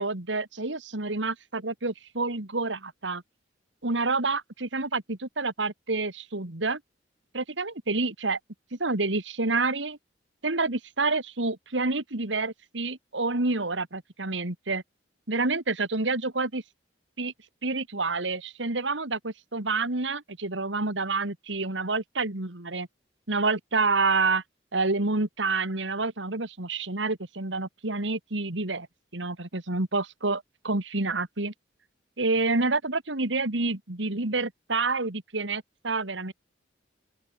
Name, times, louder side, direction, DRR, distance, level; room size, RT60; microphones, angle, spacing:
voice 1, 0.0-3.2 3.8-6.8 7.3-8.4 8.7-10.0 10.4-14.8 15.3-16.6 17.2-17.3 17.6-22.9 23.3-24.4 24.7-28.9 29.1-31.5 32.2-36.3, right 3 dB, 80° right, 2.4 m, -28 dB
open air
head